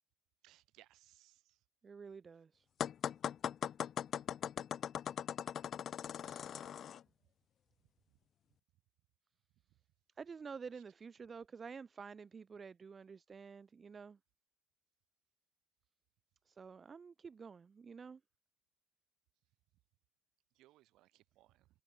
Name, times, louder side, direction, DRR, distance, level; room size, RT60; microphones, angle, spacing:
voice 1, 0.4-1.6 6.2-6.6 20.6-21.7, right 16 dB, 65° right, 2.2 m, -66 dB
voice 2, 1.8-2.7 10.2-14.2 16.5-18.2, right 5 dB, 35° right, 0.3 m, -50 dB
sound 1, 2.8-7.0, left 9 dB, 50° left, 0.5 m, -40 dB
figure-of-eight pair, 50°, 0 cm